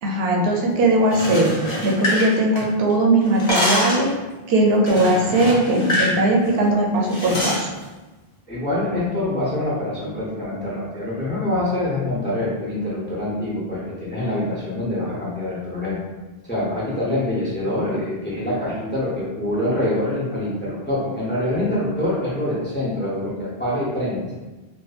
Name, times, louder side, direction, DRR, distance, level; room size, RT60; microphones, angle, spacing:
voice 1, 0.0-1.5 1.8-4.1 4.5-7.7, right 1 dB, 75° right, -1 dB, 0.8 m, -19 dB
sound 1, 1.0-2.9 3.2-4.1 4.9-6.2 6.4-6.6 7.1-7.6, left 1 dB, 45° left, 0.8 m, -24 dB
voice 2, 8.5-16.0 16.4-24.4, left 1 dB, 15° left, -7 dB, 0.5 m, -25 dB
2.6 x 2.5 x 2.4 m, 1.2 s
omnidirectional pair, 1.0 m